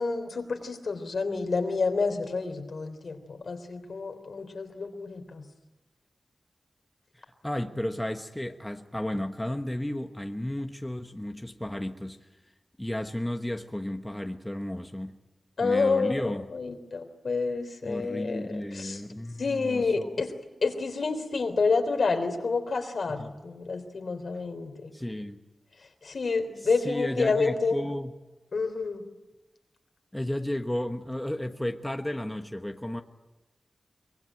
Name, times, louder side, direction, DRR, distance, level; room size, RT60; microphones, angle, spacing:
voice 1, 0.0-5.4 15.6-18.5 18.7-19.0 19.4-20.3 20.6-24.9 26.0-27.8 28.5-29.0, left 4 dB, 70° left, 6 dB, 3.4 m, -29 dB
voice 2, 7.1-12.2 12.8-15.2 15.6-16.5 17.8-20.3 23.2-23.3 24.9-25.4 26.6-28.2 30.1-33.0, left 1 dB, 10° left, 5 dB, 1.2 m, -33 dB
24.0 x 22.5 x 9.2 m, 1.1 s
wide cardioid pair, 125°, 0 cm